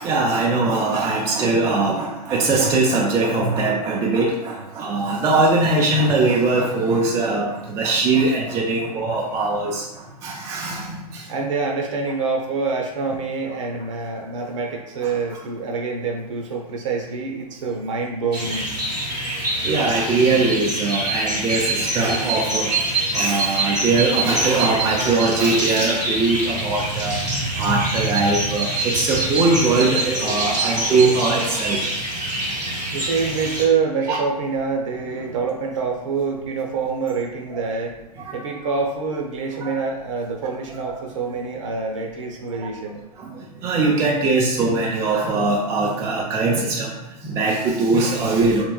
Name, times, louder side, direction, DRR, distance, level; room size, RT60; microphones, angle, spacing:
voice 1, 0.0-9.9 10.2-11.3 15.0-15.4 19.6-27.2 27.6-31.8 34.1-34.2 37.5-37.6 38.2-38.3 38.6-38.7 39.6-39.8 40.7-40.9 42.5-42.7 43.2-46.9 47.2-48.6, right 3 dB, 15° right, -2 dB, 0.3 m, -21 dB
voice 2, 11.3-18.7 32.9-37.9 38.3-43.0, right 4 dB, 50° right, 1 dB, 0.7 m, -26 dB
sound 1, 18.3-33.6, right 2 dB, 90° right, 1.2 m, -25 dB
3.3 x 3.1 x 2.2 m, 0.99 s
figure-of-eight pair, 110°, 20 cm